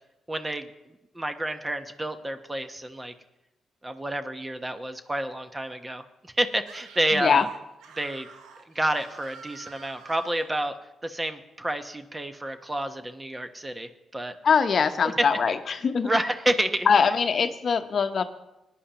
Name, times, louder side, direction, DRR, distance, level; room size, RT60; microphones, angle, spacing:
voice 1, 0.3-0.7 1.1-3.1 3.8-7.5 8.0-8.3 8.7-10.7 11.0-14.3 15.5-15.6 16.0-16.9, right 1 dB, 20° right, 8 dB, 1.0 m, -29 dB
Screaming, 6.6-10.5, right 5 dB, 80° right, 1.0 m, -48 dB
voice 2, 7.1-7.4 14.4-16.1 16.9-18.2, left 6 dB, 55° left, 9 dB, 0.8 m, -22 dB
20.0 x 10.0 x 3.0 m, 0.96 s
supercardioid pair, 50°, 0 cm